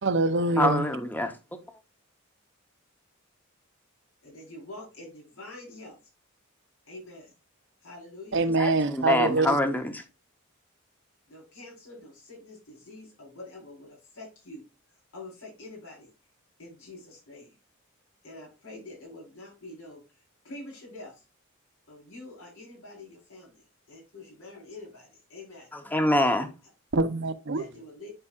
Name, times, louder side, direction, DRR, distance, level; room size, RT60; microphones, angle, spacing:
voice 1, 0.0-0.8 8.3-9.6 26.9-27.6, right 2 dB, 60° right, 0.7 m, -24 dB
voice 2, 0.6-1.3 8.6-10.0 25.7-26.5, left 1 dB, 10° left, 0.8 m, -25 dB
voice 3, 4.2-6.0 6.8-7.3 7.8-8.4 11.3-16.1 16.6-17.6 18.2-20.2 20.4-21.2 21.9-25.7 27.5-28.1, left 2 dB, 85° left, 4.2 m, -46 dB
9.8 x 4.8 x 2.4 m
head